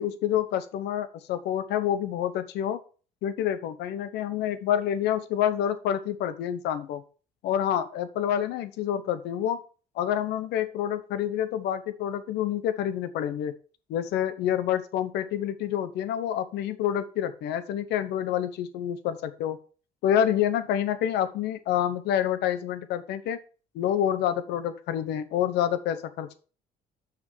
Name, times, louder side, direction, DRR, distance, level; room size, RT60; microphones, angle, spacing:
voice 1, 0.0-2.8 3.2-7.0 7.4-9.6 9.9-13.5 13.9-19.6 20.0-23.4 23.7-26.4, left 10 dB, 80° left, 13 dB, 1.0 m, -28 dB
6.3 x 6.1 x 6.2 m, 0.38 s
cardioid pair, 110°, 17 cm